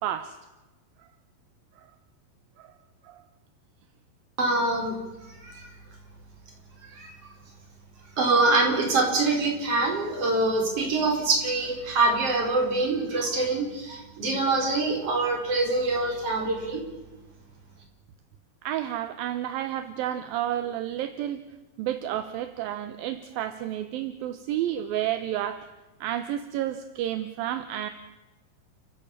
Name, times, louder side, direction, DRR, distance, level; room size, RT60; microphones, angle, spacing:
voice 1, 0.0-0.4 1.8-1.9 2.6-2.7 3.0-3.2 18.6-21.4 21.8-25.7 26.0-27.9, right 12 dB, 75° right, 10 dB, 2.5 m, -31 dB
voice 2, 4.4-5.0 5.2-5.7 6.8-7.1 8.2-16.8, right 2 dB, 35° right, 1 dB, 5.4 m, -25 dB
30.0 x 15.5 x 7.4 m, 1.1 s
omnidirectional pair, 4.8 m